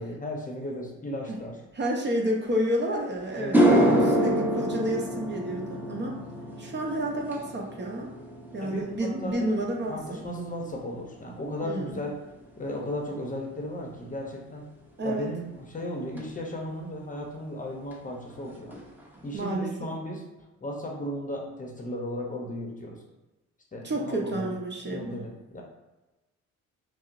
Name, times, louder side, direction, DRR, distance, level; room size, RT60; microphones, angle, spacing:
voice 1, 0.0-1.6 3.4-4.0 8.6-9.5 9.9-12.2 12.6-14.7 15.0-18.8 19.2-20.2 20.6-23.0 23.7-24.5 24.8-25.6, left 1 dB, 25° left, 0 dB, 0.7 m, -35 dB
voice 2, 1.7-6.2 6.6-8.1 8.5-10.2 11.6-12.0 15.0-15.3 19.3-19.9 23.8-25.2, right 1 dB, 35° right, -1 dB, 0.8 m, -30 dB
sound 1, 2.8-2.9 3.3-11.8 12.1-12.6 16.2-16.3 17.9-18.0 18.3-18.4 18.7-19.2, equal, 5° right, 0.7 m, -27 dB
5.7 x 2.0 x 2.6 m, 1.1 s
cardioid pair, 90°, 30 cm